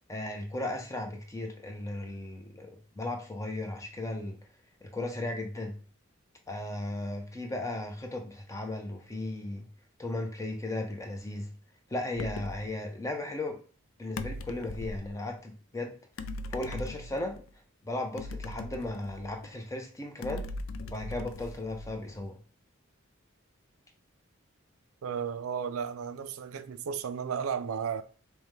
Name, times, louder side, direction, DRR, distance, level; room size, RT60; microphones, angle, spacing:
voice 1, 0.1-4.4 4.8-5.8 6.5-9.7 10.0-11.5 11.9-13.6 14.0-15.9 16.5-17.4 17.8-20.5 20.9-22.4, left 2 dB, 15° left, 0.6 m, -36 dB
sound 1, 12.2-12.6 14.2-15.1 16.2-17.4 18.2-19.5 20.2-22.1, left 2 dB, 70° left, 0.4 m, -39 dB
voice 2, 25.0-28.0, right 7 dB, 90° right, 0.4 m, -34 dB
5.4 x 2.2 x 3.1 m
head